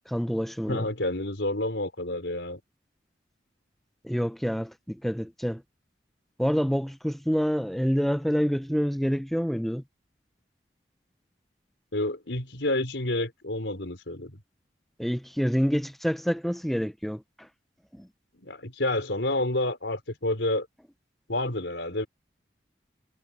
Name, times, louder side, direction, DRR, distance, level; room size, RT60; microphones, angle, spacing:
voice 1, 0.1-0.9 4.0-5.6 6.4-9.8 15.0-17.2 17.9-18.1, equal, ahead, 0.6 m, -27 dB
voice 2, 0.7-2.6 11.9-14.4 18.4-20.7 21.3-22.1, left 1 dB, 85° left, 4.3 m, -29 dB
head